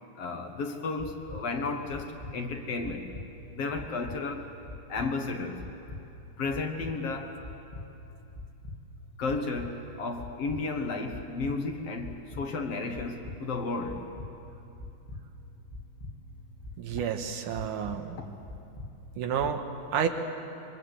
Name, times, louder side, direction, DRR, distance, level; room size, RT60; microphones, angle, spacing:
voice 1, 0.2-3.1 3.5-4.5 4.9-5.6 6.4-7.4 9.2-14.1, left 3 dB, 55° left, 4 dB, 2.2 m, -33 dB
sound 1, 1.0-1.4 1.9-2.3 2.8-3.2 3.7-4.2 4.7-5.1 5.6-6.0 6.5-6.9 7.4-7.8 8.3-8.8 9.3-9.7 10.2-10.6 11.1-11.5 12.0-12.4 12.9-13.4 13.9-14.3 14.8-15.2 15.7-16.1 16.6-17.0 17.5-18.0 18.5-18.9 19.4-19.5, left 2 dB, 20° left, 1.4 m, -41 dB
voice 2, 16.8-18.2 19.2-19.6 19.9-20.1, right 8 dB, 80° right, 6 dB, 2.8 m, -30 dB
25.0 x 23.0 x 8.2 m, 2.8 s
omnidirectional pair, 3.6 m